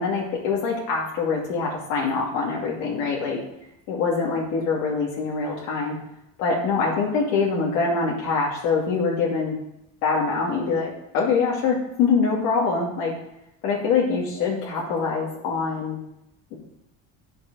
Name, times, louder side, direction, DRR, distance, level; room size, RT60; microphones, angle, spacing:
voice 1, 0.0-3.4 3.9-6.0 6.4-9.6 10.0-13.1 13.6-16.0, left 4 dB, 80° left, -3 dB, 2.5 m, -24 dB
9.7 x 6.7 x 6.8 m, 0.82 s
cardioid pair, 150°, 31 cm